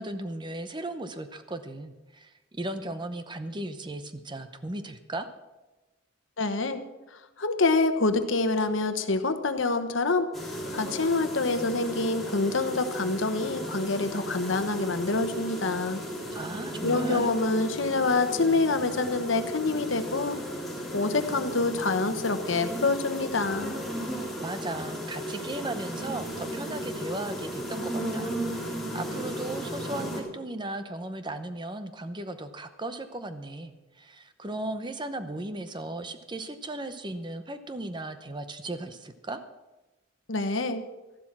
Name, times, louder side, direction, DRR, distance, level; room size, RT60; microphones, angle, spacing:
voice 1, 0.0-5.3 16.3-17.3 24.4-39.4, right 2 dB, 25° right, 10 dB, 0.8 m, -36 dB
voice 2, 6.4-6.8 7.4-10.3 10.7-16.0 16.8-20.4 20.9-23.8 40.3-40.8, left 3 dB, 70° left, 9 dB, 1.1 m, -26 dB
sound 1, 10.3-30.2, equal, ahead, 3.2 m, -35 dB
13.0 x 11.5 x 6.0 m, 1.1 s
head